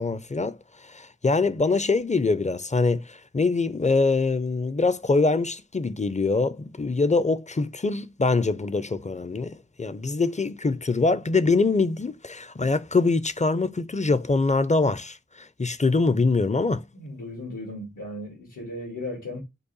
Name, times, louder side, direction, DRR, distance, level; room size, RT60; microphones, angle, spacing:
voice 1, 0.0-16.8, left 3 dB, 25° left, 0.4 m, -24 dB
voice 2, 16.9-19.4, left 1 dB, 85° left, 1.9 m, -36 dB
5.3 x 2.2 x 3.9 m
wide cardioid pair, 40°, 31 cm